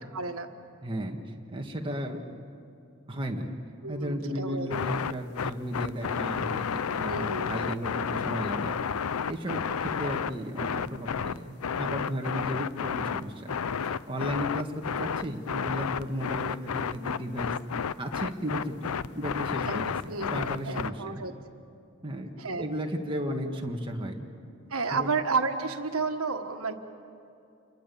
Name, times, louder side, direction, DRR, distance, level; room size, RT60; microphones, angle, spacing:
voice 1, 0.1-0.5 3.8-4.9 7.1-7.5 19.6-19.8 20.1-21.3 22.4-22.7 23.4-23.6 24.7-26.7, right 4 dB, 85° right, 7 dB, 1.5 m, -31 dB
voice 2, 0.8-1.2 1.5-2.4 3.1-3.5 3.9-6.7 6.9-8.8 9.3-13.6 13.8-14.7 15.0-17.5 18.0-21.2 22.0-22.3 22.6-24.3 24.9-25.1, equal, 25° right, 2 dB, 1.8 m, -34 dB
sound 1, 4.7-20.9, left 7 dB, 85° left, 0.5 m, -31 dB
28.5 x 22.0 x 7.0 m, 2.6 s
head